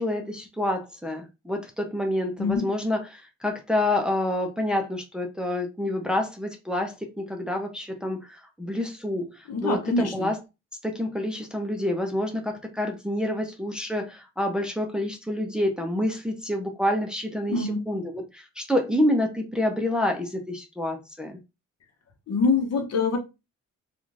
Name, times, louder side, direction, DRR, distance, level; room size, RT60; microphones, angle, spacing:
voice 1, 0.0-10.4 10.8-21.4, left 1 dB, 5° right, 0.7 m, -28 dB
voice 2, 9.5-10.3 17.5-17.8 22.3-23.2, left 4 dB, 55° left, 1.0 m, -24 dB
2.9 x 2.5 x 2.5 m
cardioid pair, 70°, 30 cm